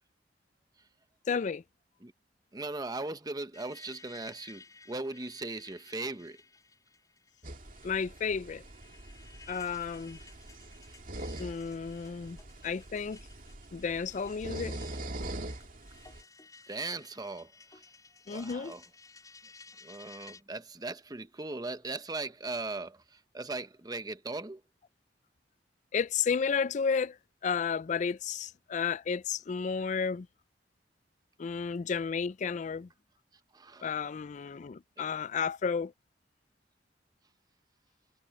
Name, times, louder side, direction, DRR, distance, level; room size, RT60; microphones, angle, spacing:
voice 1, 1.3-1.6 7.8-8.6 9.5-10.2 11.4-12.4 12.6-13.2 13.7-14.8 18.3-18.7 25.9-27.2 27.4-30.3 31.4-32.9 33.8-35.9, left 6 dB, 40° left, 0.4 m, -32 dB
voice 2, 2.5-6.4 16.7-17.5 18.3-18.8 19.8-23.0 23.3-24.6 33.5-33.9, right 3 dB, 20° right, 0.9 m, -38 dB
sound 1, 3.5-20.4, left 4 dB, 20° left, 4.1 m, -56 dB
sound 2, 7.4-16.2, right 1 dB, 50° right, 2.4 m, -43 dB
head